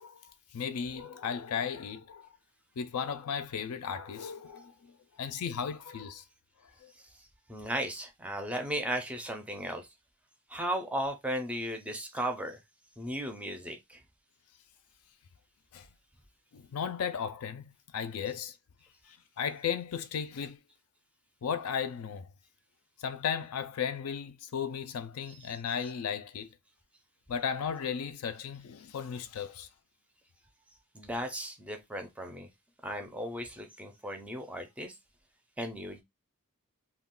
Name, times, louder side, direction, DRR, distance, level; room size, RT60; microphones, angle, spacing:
voice 1, 0.0-2.3 2.8-4.9 5.2-6.2 6.8-6.9 15.7-15.9 16.5-18.6 19.1-20.6 21.4-22.3 23.0-26.5 27.3-29.7, left 7 dB, 75° left, 0.4 m, -35 dB
voice 2, 7.5-9.9 10.5-12.6 13.0-14.0 25.3-25.4 30.9-32.5 32.8-34.9 35.6-36.0, right 1 dB, 5° right, 0.5 m, -36 dB
2.3 x 2.2 x 3.6 m
head